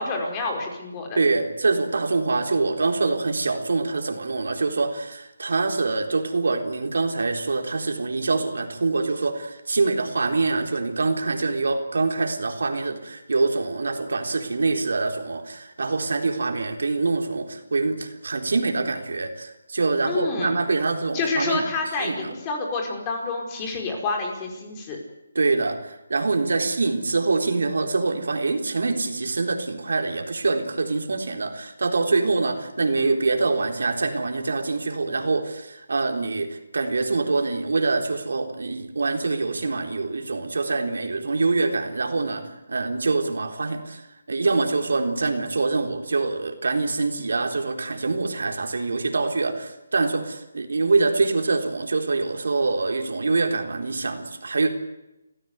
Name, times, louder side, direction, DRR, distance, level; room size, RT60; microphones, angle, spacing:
voice 1, 0.0-1.2 20.1-20.6 21.1-25.0, left 3 dB, 20° left, 2 dB, 5.0 m, -28 dB
voice 2, 1.2-21.7 22.0-22.3 25.3-44.0 44.3-54.7, right 3 dB, 75° right, 4 dB, 4.0 m, -25 dB
29.5 x 15.5 x 8.2 m, 0.95 s
hypercardioid pair, 160°, 0 cm